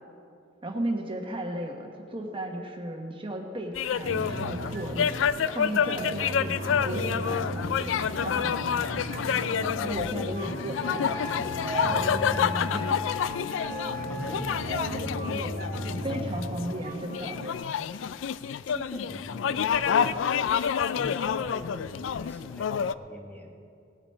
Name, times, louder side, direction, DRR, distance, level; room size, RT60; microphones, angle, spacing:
voice 1, 0.6-5.2 5.5-9.3 9.8-10.8 11.4-11.6 11.8-12.9 15.3-15.6 16.0-17.5, right 1 dB, 30° right, 2 dB, 1.2 m, -35 dB
sound 1, 3.8-22.9, left 7 dB, 75° left, 0.3 m, -29 dB
sound 2, 4.0-17.5, right 1 dB, 50° right, 0.8 m, -36 dB
voice 2, 10.4-10.9 13.8-15.1 16.6-17.0 18.7-20.5 20.9-23.5, equal, 10° left, 0 dB, 1.1 m, -43 dB
Wind instrument woodwind instrument, 10.8-14.7, left 7 dB, 25° left, 3.0 m, -37 dB
18.5 x 8.9 x 4.4 m, 2.5 s
head